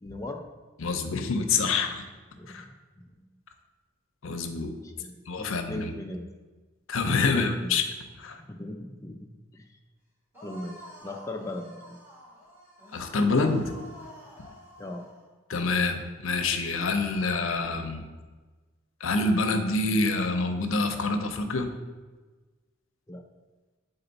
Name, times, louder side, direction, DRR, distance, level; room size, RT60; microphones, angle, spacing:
voice 1, 0.0-0.5 2.4-3.3 4.8-6.3 7.3-7.8 8.4-9.3 9.5-9.8 10.4-12.0 14.8-15.1 23.1-23.2, left 1 dB, 15° left, 2 dB, 0.3 m, -39 dB
voice 2, 0.8-2.0 2.5-2.6 4.2-4.7 5.3-5.9 6.9-7.8 8.2-8.4 12.9-13.7 15.5-18.0 19.0-21.7, left 3 dB, 75° left, 6 dB, 0.6 m, -26 dB
sound 1, 10.3-15.2, equal, 10° right, 1.6 m, -48 dB
7.8 x 4.0 x 4.0 m, 1.3 s
head